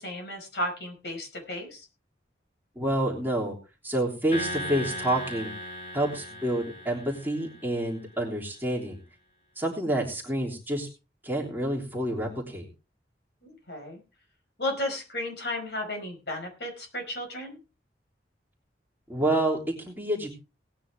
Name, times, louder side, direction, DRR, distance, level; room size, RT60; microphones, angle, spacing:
voice 1, 0.0-1.9 13.4-14.0 14.6-17.6, left 1 dB, 65° left, 2 dB, 5.3 m, -34 dB
voice 2, 2.7-3.6 3.8-5.5 5.9-9.0 9.6-10.9 11.2-12.7 19.1-20.3, right 1 dB, 10° right, -3 dB, 3.3 m, -28 dB
sound 1, 4.3-7.8, equal, 40° left, 2.8 m, -37 dB
18.5 x 9.8 x 3.6 m, 0.31 s
head